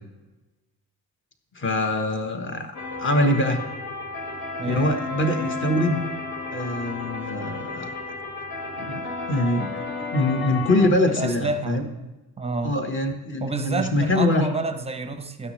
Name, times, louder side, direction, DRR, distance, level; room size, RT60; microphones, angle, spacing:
voice 1, 1.5-2.7 3.0-3.6 4.7-6.0 6.5-7.9 8.8-9.7 10.1-11.8 12.6-14.5, left 1 dB, 30° left, 4 dB, 1.3 m, -23 dB
sound 1, 2.7-10.9, left 3 dB, 75° left, 2.1 m, -32 dB
voice 2, 4.6-5.0 11.1-12.1 12.4-12.8 13.4-15.5, right 3 dB, 15° right, 8 dB, 0.6 m, -29 dB
13.5 x 9.4 x 3.2 m, 1.1 s
wide cardioid pair, 170°, 38 cm